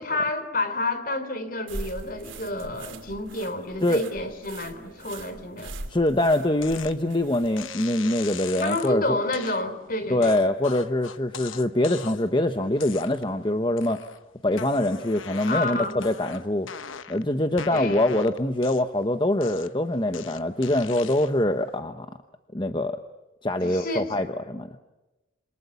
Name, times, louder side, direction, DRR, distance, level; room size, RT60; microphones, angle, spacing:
voice 1, 0.0-5.8 8.6-10.4 15.5-16.0 17.7-18.0 23.6-24.2, left 2 dB, 45° left, 10 dB, 3.4 m, -29 dB
sound 1, 1.7-7.7, right 2 dB, 75° right, 2.9 m, -41 dB
voice 2, 5.9-9.2 10.1-14.0 14.4-16.7 17.1-22.1 22.5-23.0 23.4-24.7, left 1 dB, 25° left, 8 dB, 1.0 m, -24 dB
sound 2, 6.6-7.0 7.6-8.9 9.3-9.6 10.2-12.3 12.8-13.4 13.8-14.2 14.5-17.2 17.6-19.0 19.4-21.4, left 7 dB, 80° left, 1.1 m, -40 dB
28.0 x 26.0 x 7.0 m, 1.1 s
head